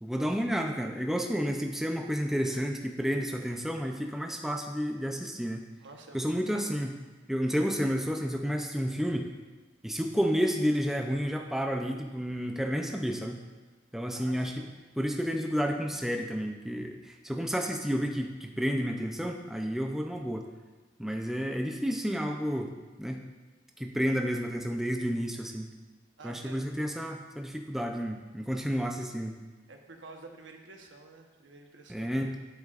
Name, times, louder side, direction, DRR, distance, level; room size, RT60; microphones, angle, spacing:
voice 1, 0.0-5.6 6.1-6.9 7.3-9.3 9.8-13.4 13.9-14.6 15.0-20.4 21.0-22.7 23.0-23.2 23.8-25.7 26.2-29.3 31.9-32.4, equal, ahead, 2 dB, 0.4 m, -31 dB
voice 2, 5.8-6.7 14.1-14.8 26.2-26.6 29.7-32.3, right 3 dB, 80° right, 3 dB, 1.0 m, -50 dB
10.5 x 8.1 x 2.5 m, 1.2 s
head